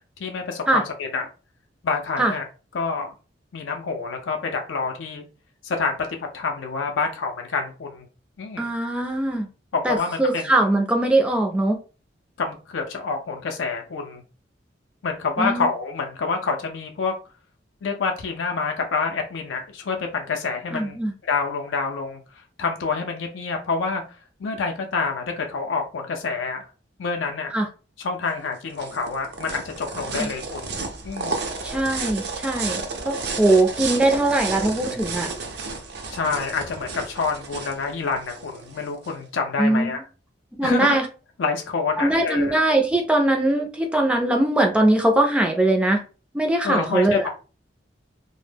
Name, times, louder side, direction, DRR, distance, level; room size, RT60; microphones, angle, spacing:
voice 1, 0.2-1.3 1.8-2.5 2.7-3.1 3.5-5.2 5.6-8.1 8.4-8.7 9.7-10.5 12.4-14.2 15.0-17.1 17.8-21.0 21.2-22.2 22.6-24.0 24.4-26.7 27.0-27.5 28.0-30.7 31.0-31.4 36.1-40.0 40.6-41.0 41.4-42.6 46.6-47.3, left 4 dB, 90° left, 3 dB, 0.4 m, -27 dB
voice 2, 8.6-9.5 9.8-11.8 15.4-15.7 20.7-21.1 27.5-27.7 30.2-30.3 31.6-35.3 39.6-40.0 40.6-41.1 42.0-46.0 46.3-47.3, right 1 dB, 5° right, 3 dB, 0.3 m, -21 dB
sound 1, 28.3-39.1, right 4 dB, 60° right, 0.5 m, -32 dB
2.0 x 2.0 x 3.2 m, 0.34 s
head